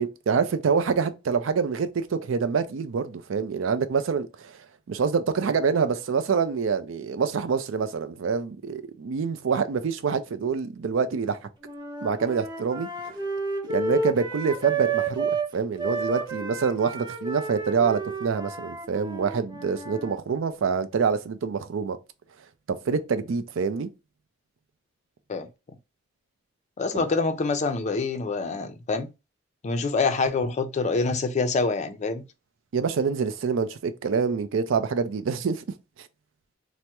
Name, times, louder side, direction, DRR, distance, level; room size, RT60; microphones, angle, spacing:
voice 1, 0.0-4.5 4.9-11.4 12.0-13.2 13.7-22.0 22.7-23.9 26.9-27.1 32.7-35.6, right 5 dB, 75° right, 0.4 m, -26 dB
sound 1, 11.6-15.5 15.8-20.2, right 4 dB, 20° right, 0.7 m, -31 dB
voice 2, 26.8-29.1 29.6-32.2, left 3 dB, 35° left, 0.4 m, -26 dB
3.3 x 2.0 x 2.9 m
head